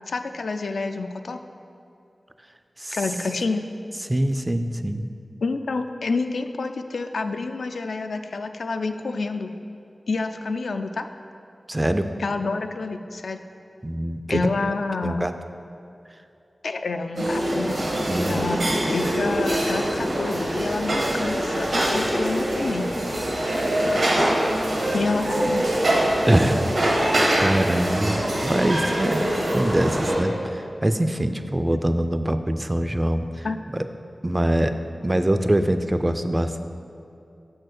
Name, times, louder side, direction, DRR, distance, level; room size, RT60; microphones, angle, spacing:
voice 1, 0.1-1.4 2.9-3.7 5.4-9.5 10.1-11.1 12.2-13.4 14.3-15.3 16.6-17.8 18.3-22.9 24.9-25.7 33.4-33.6, left 3 dB, 85° left, 7 dB, 0.3 m, -28 dB
voice 2, 4.1-5.1 11.7-12.1 13.8-14.4 15.0-15.3 18.1-18.4 26.2-26.6 26.9-29.2 29.5-33.5 34.2-34.7 35.0-36.6, right 1 dB, 20° right, 9 dB, 0.4 m, -23 dB
sound 1, 17.2-30.2, right 1 dB, 75° right, 1.4 m, -24 dB
6.2 x 4.4 x 6.5 m, 2.7 s
wide cardioid pair, 80°, 0 cm